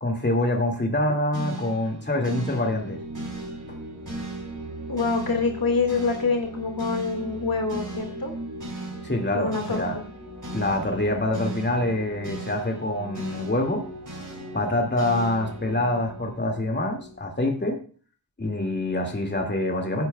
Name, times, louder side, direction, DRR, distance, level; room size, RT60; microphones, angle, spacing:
voice 1, 0.0-3.0 9.0-10.0 10.5-13.9 14.5-17.8 18.4-20.1, left 1 dB, 25° left, 2 dB, 2.2 m, -25 dB
sound 1, 1.3-17.6, right 1 dB, 45° right, 4.0 m, -37 dB
voice 2, 4.9-8.3 9.3-10.0, left 4 dB, 55° left, 3 dB, 1.9 m, -26 dB
15.0 x 9.6 x 2.3 m, 0.40 s
wide cardioid pair, 100°, 42 cm